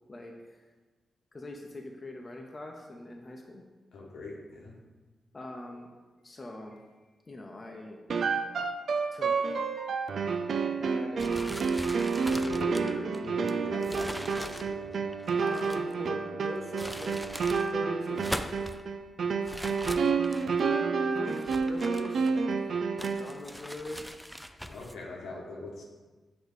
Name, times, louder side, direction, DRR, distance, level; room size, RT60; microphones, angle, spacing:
voice 1, 0.1-0.6 1.3-3.6 5.3-8.0 9.1-9.7 10.8-11.5 15.4-18.7 21.1-22.7 23.0-24.2, left 1 dB, 35° left, 1 dB, 0.7 m, -42 dB
voice 2, 3.9-4.7 12.4-14.9 24.6-25.8, left 2 dB, 80° left, -2 dB, 1.1 m, -40 dB
sound 1, 8.1-23.4, right 5 dB, 70° right, 0.4 m, -30 dB
sound 2, 11.2-15.9 16.6-17.7 18.1-18.8 19.4-20.6 21.3-22.6 23.0-25.0, equal, ahead, 0.4 m, -41 dB
6.4 x 3.0 x 5.2 m, 1.3 s
cardioid pair, 60°, 0 cm